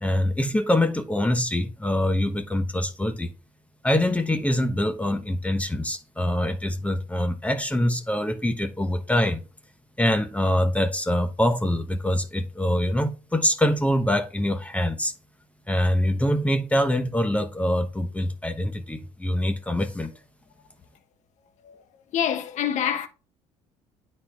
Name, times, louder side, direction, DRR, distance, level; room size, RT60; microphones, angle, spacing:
voice 1, 0.0-3.3 3.8-9.4 10.0-15.1 15.7-20.1, left 1 dB, 10° left, 1.0 m, -24 dB
voice 2, 22.1-23.1, left 9 dB, 60° left, 1.3 m, -26 dB
9.3 x 4.4 x 3.4 m
supercardioid pair, 90°, 14 cm